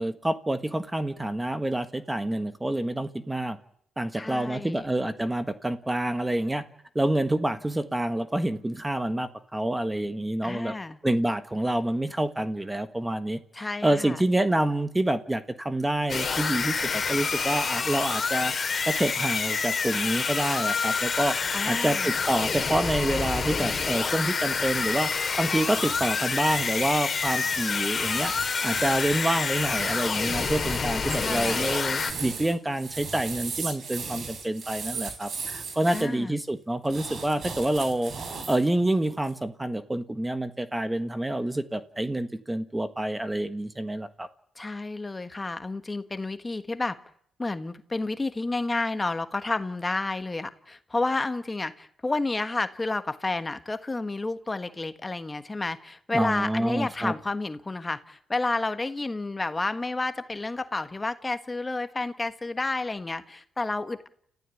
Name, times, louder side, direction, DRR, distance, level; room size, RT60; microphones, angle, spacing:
voice 1, 0.0-3.6 4.0-6.6 6.9-10.7 11.0-18.5 18.8-21.3 21.7-25.1 25.4-28.3 28.6-38.1 38.5-44.3 56.1-57.1, right 1 dB, 10° right, 10 dB, 1.5 m, -27 dB
voice 2, 4.1-4.9 10.4-11.0 13.5-14.2 21.5-22.1 31.1-31.6 35.9-36.3 44.6-47.0 47.4-64.1, left 2 dB, 20° left, 10 dB, 1.5 m, -30 dB
sound 1, 16.1-32.1, left 5 dB, 40° left, 3.3 m, -28 dB
sound 2, 25.7-36.0 36.8-38.7 39.0-39.3, right 5 dB, 55° right, 5.4 m, -37 dB
30.0 x 15.0 x 8.4 m, 0.68 s
cardioid pair, 90°, 0 cm